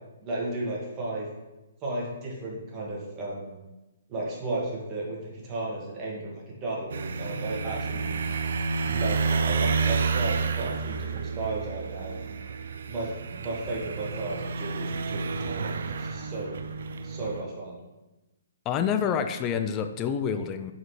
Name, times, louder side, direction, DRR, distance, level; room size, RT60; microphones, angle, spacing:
voice 1, 0.2-1.3 1.8-3.6 4.1-8.3 8.8-12.2 12.9-16.6 17.0-17.8, right 2 dB, 25° right, -3 dB, 1.5 m, -34 dB
sound 1, 6.9-17.4, right 5 dB, 70° right, 0.4 m, -30 dB
voice 2, 18.7-20.7, left 7 dB, 20° left, 8 dB, 0.3 m, -27 dB
7.0 x 4.1 x 3.3 m, 1.0 s
hypercardioid pair, 155°, 0 cm